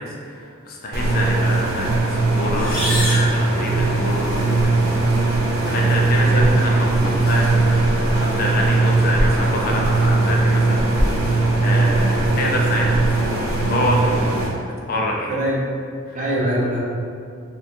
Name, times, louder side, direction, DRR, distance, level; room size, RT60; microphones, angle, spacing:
voice 1, 0.0-4.9 5.6-14.4 14.9-15.3 16.1-16.2, left 1 dB, 45° left, -1 dB, 0.4 m, -27 dB
sound 1, 0.9-14.5, right 2 dB, 90° right, 0.6 m, -19 dB
sound 2, 2.5-4.3, left 1 dB, 15° left, 1.1 m, -27 dB
voice 2, 16.1-16.8, right 1 dB, 35° right, -6 dB, 0.7 m, -22 dB
4.3 x 2.2 x 2.6 m, 2.3 s
head